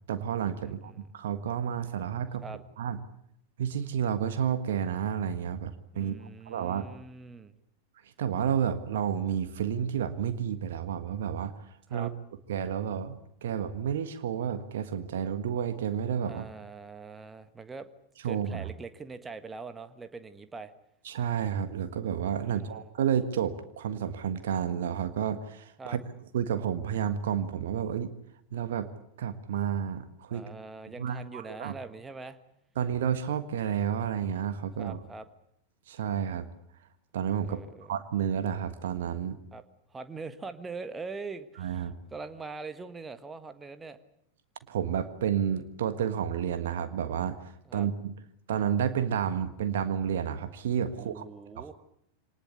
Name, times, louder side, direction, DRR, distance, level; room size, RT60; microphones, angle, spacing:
voice 1, 0.1-2.4 2.8-3.0 3.6-6.9 8.2-11.5 11.9-12.1 12.5-16.4 18.2-18.7 21.0-26.0 26.3-28.1 28.5-28.9 29.2-30.4 31.0-31.7 32.8-35.0 35.9-36.4 37.1-37.6 37.9-39.4 41.6-41.9 44.7-47.4 47.7-48.1 48.5-51.2 51.6-51.7, right 8 dB, 60° right, 10 dB, 1.5 m, -30 dB
voice 2, 0.6-1.1 2.4-2.6 5.9-7.5 11.9-12.1 16.2-17.9 18.2-20.7 22.4-22.9 25.8-26.0 30.3-32.4 34.8-35.3 37.4-37.9 39.5-39.6 39.9-44.0 47.6-47.9 50.9-51.7, right 4 dB, 15° right, 10 dB, 1.6 m, -43 dB
25.0 x 19.0 x 8.4 m, 0.72 s
figure-of-eight pair, 90°, 0 cm